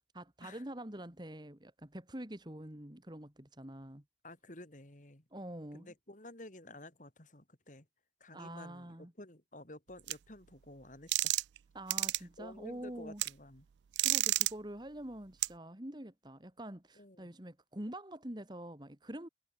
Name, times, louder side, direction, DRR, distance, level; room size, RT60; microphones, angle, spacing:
voice 1, 0.1-4.0 5.3-5.9 8.3-9.1 11.7-13.2 14.0-19.3, right 1 dB, 25° right, 2.1 m, -46 dB
voice 2, 4.2-5.3 5.7-7.9 8.2-11.4 12.2-13.7 17.0-17.3, left 1 dB, 45° left, 3.5 m, -52 dB
sound 1, 10.1-10.2 11.1-11.6 11.9-12.2 13.2-13.3 14.0-14.5 15.4-15.5, right 18 dB, 85° right, 0.4 m, -29 dB
head